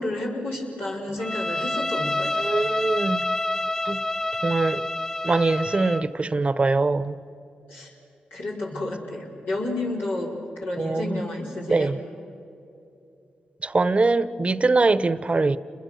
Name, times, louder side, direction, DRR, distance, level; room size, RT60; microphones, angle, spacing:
voice 1, 0.0-2.5 7.7-7.9 8.3-10.4 10.6-11.9, left 2 dB, 85° left, 4.8 m, -31 dB
Bowed string instrument, 1.2-6.1, left 2 dB, 20° left, 1.9 m, -28 dB
voice 2, 2.2-3.2 3.8-4.0 4.4-4.8 5.2-7.1 10.8-11.2 11.7-12.0 13.6-15.6, right 3 dB, 35° right, 0.8 m, -23 dB
29.5 x 22.0 x 6.5 m
supercardioid pair, 50°, 3 cm